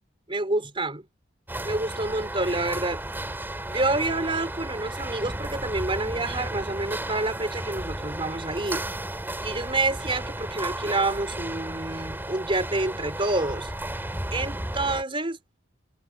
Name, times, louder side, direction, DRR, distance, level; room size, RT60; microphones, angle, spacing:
voice 1, 0.3-1.1 1.6-3.0 3.7-8.8 9.4-13.7 14.3-15.4, right 2 dB, 30° right, 4.2 m, -28 dB
sound 1, 1.5-15.0, right 1 dB, 10° right, 2.8 m, -33 dB
head